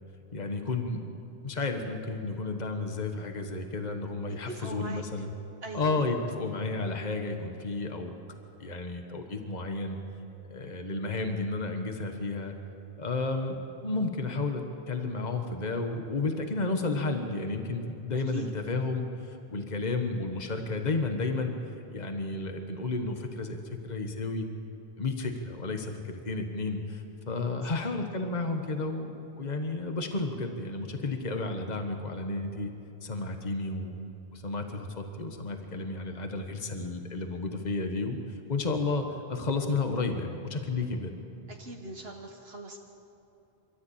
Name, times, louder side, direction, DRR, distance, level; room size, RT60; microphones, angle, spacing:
voice 1, 0.3-1.1 1.4-5.3 5.7-8.2 8.6-10.0 10.5-12.5 13.0-13.6 13.8-21.5 21.9-24.5 25.0-32.7 33.0-34.0 34.3-41.1, left 3 dB, 45° left, 5 dB, 1.5 m, -32 dB
voice 2, 4.5-5.0 5.6-6.1 18.1-18.5 27.6-27.9 41.5-42.8, right 2 dB, 75° right, 1 dB, 1.6 m, -41 dB
27.5 x 13.0 x 8.7 m, 2.9 s
omnidirectional pair, 1.0 m